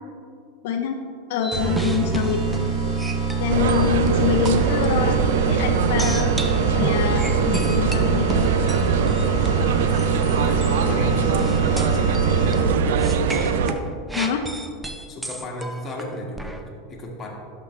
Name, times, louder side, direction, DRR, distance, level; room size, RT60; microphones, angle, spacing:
voice 1, 0.6-1.0 1.3-2.4 3.4-6.3 6.7-8.5 14.2-14.4, left 8 dB, 70° left, 4 dB, 0.5 m, -25 dB
sound 1, 1.4-4.1 4.4-5.1 6.0-10.3 10.6-10.8 11.4-12.5 13.0-16.6, right 1 dB, 5° right, 0.5 m, -33 dB
sound 2, 1.5-12.9, right 4 dB, 35° right, 1.2 m, -25 dB
sound 3, 3.5-13.7, right 6 dB, 80° right, 0.5 m, -22 dB
voice 2, 10.3-12.2 12.4-12.7 15.1-16.5 16.9-17.3, left 1 dB, 25° left, -2 dB, 1.6 m, -35 dB
11.0 x 6.1 x 3.2 m, 2.4 s
supercardioid pair, 135°, 0 cm